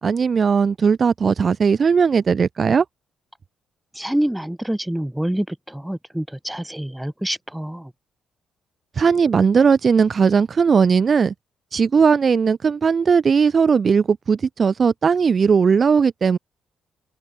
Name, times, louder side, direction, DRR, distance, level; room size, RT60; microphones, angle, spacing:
voice 1, 0.0-2.8 8.9-11.3 11.7-16.4, right 6 dB, 40° right, 3.4 m, -18 dB
voice 2, 3.9-7.9, right 1 dB, 5° right, 7.3 m, -26 dB
cardioid pair, 90°, 0 cm